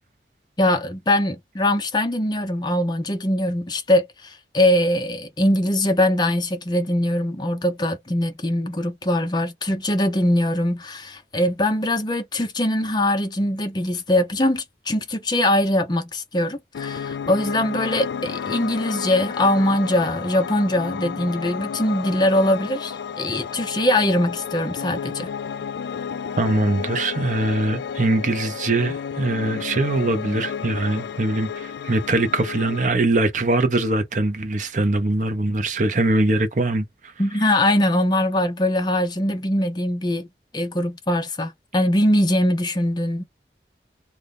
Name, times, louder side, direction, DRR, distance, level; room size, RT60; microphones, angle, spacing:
voice 1, 0.6-25.3 37.2-40.3 40.5-43.2, left 1 dB, 25° left, 0.6 m, -22 dB
Piano, 16.7-32.9, left 7 dB, 80° left, 0.3 m, -32 dB
voice 2, 26.4-37.1, right 2 dB, 45° right, 0.7 m, -22 dB
2.6 x 2.5 x 3.4 m
head